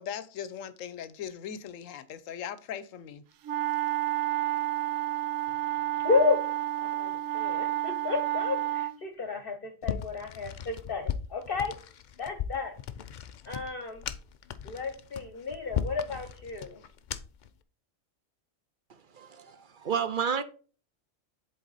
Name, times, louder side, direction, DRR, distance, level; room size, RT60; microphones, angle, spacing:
voice 1, 0.0-3.2, left 8 dB, 85° left, 1.1 m, -39 dB
sound 1, 3.4-9.0, right 14 dB, 80° right, 1.0 m, -30 dB
voice 2, 6.0-6.4 6.8-11.7 12.2-12.7 13.5-14.0 14.6-16.8, left 4 dB, 50° left, 0.9 m, -31 dB
sound 2, 9.8-17.5, left 8 dB, 65° left, 0.4 m, -37 dB
voice 3, 19.1-20.4, right 7 dB, 55° right, 0.6 m, -31 dB
7.9 x 4.1 x 4.0 m
omnidirectional pair, 1.3 m